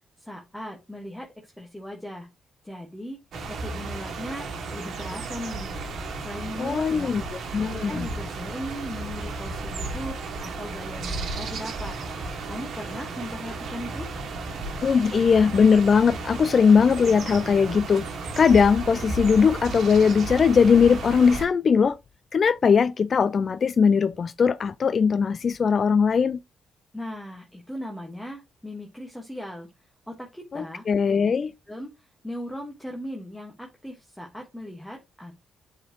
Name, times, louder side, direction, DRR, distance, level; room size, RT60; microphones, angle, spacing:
voice 1, 0.2-2.3 2.6-3.2 3.5-7.1 7.7-12.0 12.4-14.1 26.9-31.3 31.7-35.4, equal, 10° left, 1.5 m, -38 dB
sound 1, 3.3-21.5, right 3 dB, 70° right, 1.5 m, -34 dB
voice 2, 6.6-8.1 14.8-18.1 18.4-22.0 22.3-26.4 30.5-31.5, left 6 dB, 50° left, 0.3 m, -20 dB
7.5 x 4.3 x 3.0 m
supercardioid pair, 55°, 0 cm